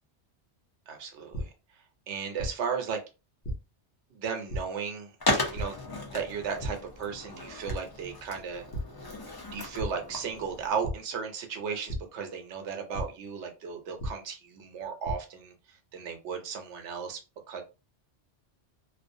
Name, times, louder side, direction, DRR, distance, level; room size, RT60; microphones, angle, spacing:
voice 1, 0.9-3.0 4.1-5.2 5.5-5.8 6.1-8.6 9.5-17.2 17.5-17.6, right 6 dB, 90° right, 4 dB, 0.9 m, -35 dB
sound 1, 1.3-1.4 2.4-2.5 3.4-3.5 4.5-4.6 5.5-5.6 6.6-6.7 7.2-7.3 7.7-7.8 8.7-8.8 9.8-9.9 10.8-10.9 11.9-12.0 12.9-13.0 14.0-14.1 14.8-15.1, right 1 dB, 60° left, 0.8 m, -32 dB
Skateboard, 5.2-10.7, left 2 dB, 35° left, 0.4 m, -35 dB
2.4 x 2.0 x 2.6 m, 0.29 s
omnidirectional pair, 1.2 m